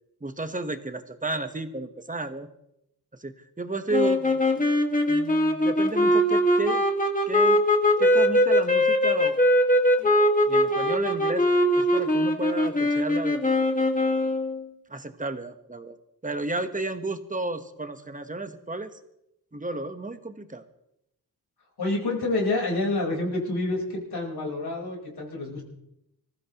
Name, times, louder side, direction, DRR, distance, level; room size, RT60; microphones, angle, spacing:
voice 1, 0.2-2.5 3.2-4.3 5.1-6.9 7.3-7.6 8.0-9.4 10.5-11.5 11.8-13.4 14.9-16.0 16.2-18.9 19.5-20.6, right 2 dB, 20° right, 9 dB, 1.2 m, -32 dB
sound 1, 3.9-14.7, equal, 20° left, 1.8 m, -22 dB
voice 2, 21.8-25.6, left 2 dB, 80° left, -1 dB, 4.5 m, -28 dB
25.5 x 15.0 x 3.0 m, 0.83 s
wide cardioid pair, 105°, 38 cm